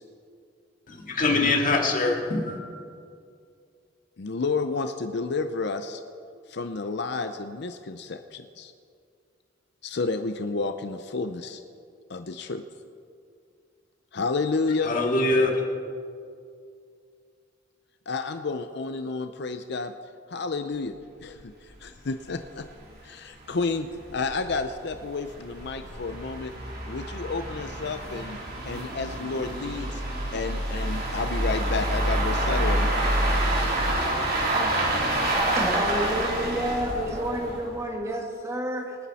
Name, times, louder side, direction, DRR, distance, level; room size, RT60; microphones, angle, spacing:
voice 1, 0.9-2.6 14.7-15.6, left 2 dB, 45° left, 1 dB, 2.0 m, -24 dB
voice 2, 4.2-6.0 6.5-8.7 9.8-11.6 12.1-12.6 14.1-14.9 18.1-19.9 20.3-21.5 21.8-22.7 23.0-26.5 26.9-28.4 28.7-30.0 30.3-33.1, left 4 dB, 60° left, 8 dB, 0.6 m, -31 dB
sound 1, 21.3-21.4 21.7-21.8 22.2-22.3 22.6-22.7 23.4-37.8, right 1 dB, 55° right, 3.3 m, -27 dB
voice 3, 35.5-39.0, right 1 dB, 15° right, 0 dB, 1.9 m, -29 dB
24.5 x 9.8 x 4.2 m, 2.3 s
head